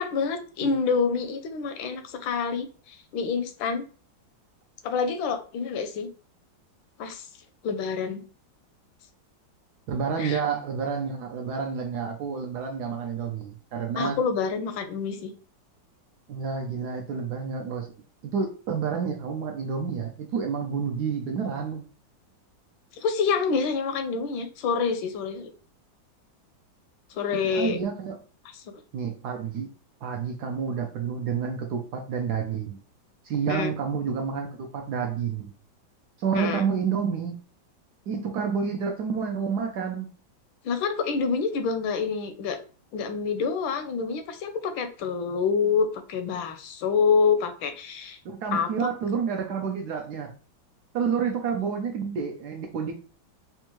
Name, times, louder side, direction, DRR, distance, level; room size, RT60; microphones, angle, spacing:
voice 1, 0.0-3.8 4.8-6.1 7.0-7.3 7.6-8.2 10.2-10.4 14.0-15.3 22.9-25.5 27.1-27.8 28.5-28.8 33.5-33.7 36.3-36.6 40.6-42.6 42.9-48.2 48.5-48.9, left 5 dB, 80° left, 8 dB, 1.3 m, -27 dB
voice 2, 9.9-14.2 16.3-17.9 18.2-21.9 27.5-28.2 28.9-29.7 30.0-32.8 33.2-35.5 36.2-37.3 38.1-40.1 48.2-50.3 50.9-52.9, right 6 dB, 75° right, 3 dB, 0.9 m, -29 dB
4.3 x 2.2 x 2.9 m, 0.39 s
omnidirectional pair, 2.1 m